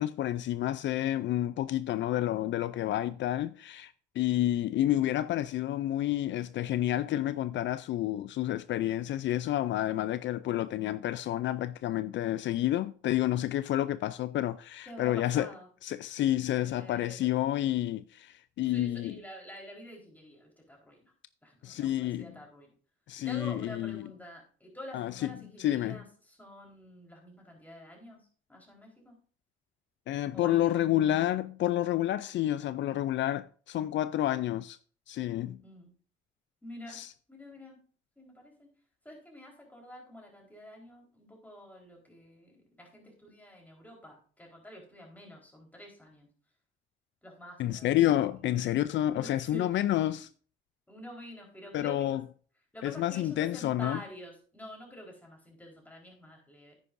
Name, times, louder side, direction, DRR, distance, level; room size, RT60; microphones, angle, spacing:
voice 1, 0.0-15.5 15.8-19.2 21.6-22.4 23.1-24.1 24.9-26.0 30.1-34.8 35.1-35.6 36.9-37.1 47.6-50.3 51.7-52.3 52.8-54.0, left 13 dB, 70° left, 0.4 m, -29 dB
voice 2, 14.9-15.7 16.5-17.3 18.6-21.1 21.4-22.7 23.2-28.2 28.5-29.1 30.3-30.7 35.6-35.9 36.6-37.0 37.3-37.8 38.2-38.7 39.0-46.3 47.2-47.9 49.1-49.7 50.1-50.2 50.9-52.2 52.7-56.7, left 1 dB, 10° left, 4.1 m, -48 dB
10.0 x 9.3 x 2.6 m
cardioid pair, 90°, 20 cm